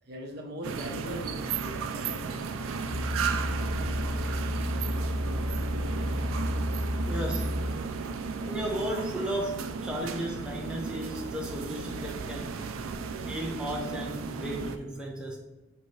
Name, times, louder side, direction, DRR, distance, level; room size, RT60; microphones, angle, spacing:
voice 1, 0.0-2.7, equal, 55° right, 1 dB, 0.8 m, -41 dB
Warehouse Inside, 0.6-14.8, right 5 dB, 85° right, 0.4 m, -34 dB
sound 1, 2.9-8.0 8.6-8.7, left 1 dB, 85° left, 0.9 m, -31 dB
voice 2, 7.1-7.6 8.4-12.7 13.3-15.4, equal, 5° right, -2 dB, 0.4 m, -35 dB
5.4 x 2.7 x 3.1 m, 1.1 s
head